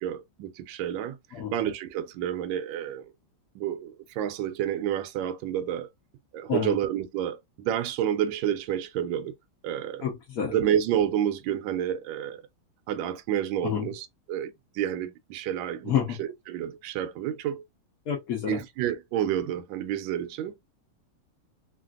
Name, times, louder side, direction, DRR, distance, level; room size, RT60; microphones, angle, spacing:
voice 1, 0.0-1.2 1.5-3.1 3.5-5.9 6.3-9.3 9.6-10.1 10.5-12.4 12.9-17.6 18.5-20.6, right 10 dB, 75° right, 1.2 m, -29 dB
voice 2, 10.0-10.5 13.6-13.9 15.8-16.2 18.1-18.6, left 8 dB, 65° left, 0.9 m, -28 dB
3.3 x 2.4 x 2.3 m
omnidirectional pair, 2.4 m